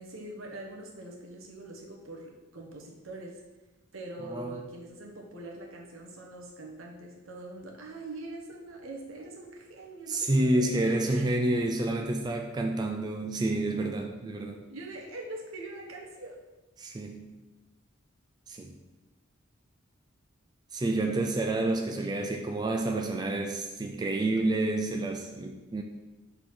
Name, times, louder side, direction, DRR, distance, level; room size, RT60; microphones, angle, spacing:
voice 1, 0.0-3.4 3.9-11.3 14.7-16.4, right 2 dB, 80° right, 0 dB, 1.2 m, -43 dB
voice 2, 4.3-4.6 10.1-14.6 16.8-17.4 18.5-18.7 20.7-25.8, right 2 dB, 20° right, 3 dB, 0.4 m, -29 dB
5.9 x 3.8 x 4.8 m, 1.1 s
head